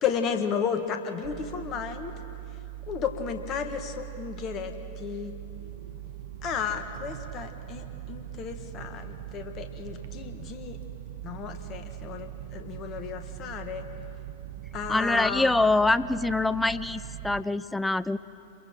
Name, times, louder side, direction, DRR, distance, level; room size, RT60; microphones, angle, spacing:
voice 1, 0.0-2.1 2.9-5.4 6.4-10.8 11.2-13.8 14.7-15.5, left 7 dB, 35° left, 7 dB, 1.7 m, -33 dB
sound 1, 1.2-17.4, right 12 dB, 60° right, 1.0 m, -41 dB
voice 2, 14.9-18.2, left 2 dB, 5° left, 16 dB, 0.4 m, -25 dB
29.0 x 22.5 x 4.5 m, 2.9 s
figure-of-eight pair, 95°, 0 cm